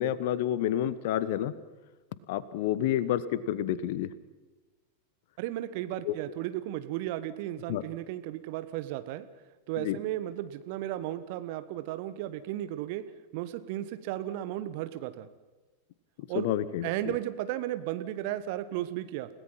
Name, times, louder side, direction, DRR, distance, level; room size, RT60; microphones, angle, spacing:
voice 1, 0.0-1.5 2.3-4.1 6.0-6.1 7.7-7.8 9.8-10.0 16.3-16.9, left 11 dB, 50° left, 17 dB, 1.1 m, -29 dB
voice 2, 5.4-9.3 9.7-13.0 13.3-15.3 16.3-16.5 16.8-19.3, right 13 dB, 45° right, 12 dB, 1.3 m, -34 dB
30.0 x 17.5 x 5.8 m, 1.2 s
figure-of-eight pair, 90°, 0 cm